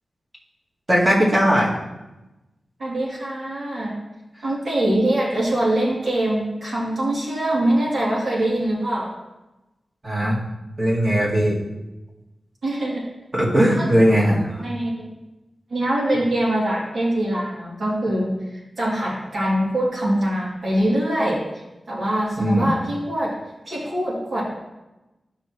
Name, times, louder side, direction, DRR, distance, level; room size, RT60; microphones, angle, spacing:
voice 1, 0.9-1.7 10.0-10.4 10.8-11.6 13.3-14.6 22.4-22.7, equal, 35° right, -5 dB, 2.3 m, -18 dB
voice 2, 2.8-4.0 4.4-9.2 12.6-13.1 13.8-13.9 14.6-15.1 15.7-18.3 18.8-21.5 21.9-23.4 23.6-24.4, right 1 dB, 80° right, -5 dB, 2.9 m, -23 dB
12.5 x 5.6 x 3.1 m, 1.0 s
wide cardioid pair, 85°, 0 cm